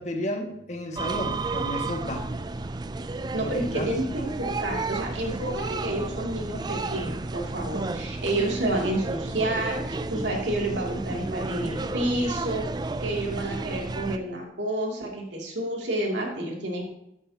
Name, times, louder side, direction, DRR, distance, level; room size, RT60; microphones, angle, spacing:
voice 1, 0.0-2.4 3.3-3.9, left 1 dB, 40° left, 2 dB, 1.8 m, -32 dB
sound 1, 1.0-14.2, right 3 dB, 25° right, 0.4 m, -32 dB
voice 2, 3.3-12.7 13.0-16.9, right 1 dB, 90° right, -1 dB, 2.7 m, -29 dB
12.5 x 8.7 x 2.9 m, 0.82 s
head